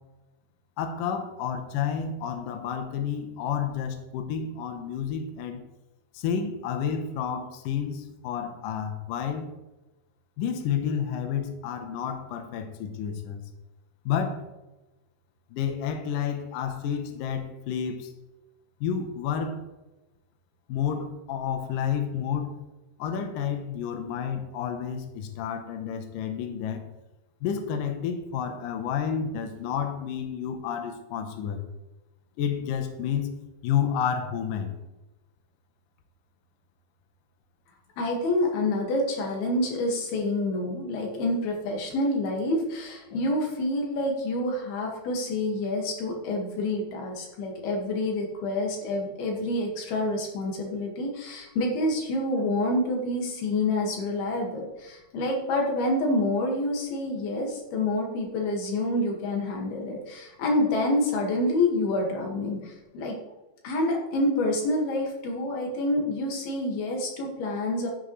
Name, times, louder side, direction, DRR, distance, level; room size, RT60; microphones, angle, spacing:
voice 1, 0.8-5.6 6.1-9.5 10.4-13.5 14.1-14.4 15.5-18.1 18.8-19.6 20.7-22.6 23.0-26.8 27.4-31.7 32.4-34.8, left 8 dB, 85° left, 6 dB, 1.9 m, -30 dB
voice 2, 38.0-63.2 63.6-67.9, left 1 dB, 60° left, 0 dB, 3.7 m, -27 dB
12.5 x 9.1 x 3.3 m, 1.0 s
omnidirectional pair, 5.4 m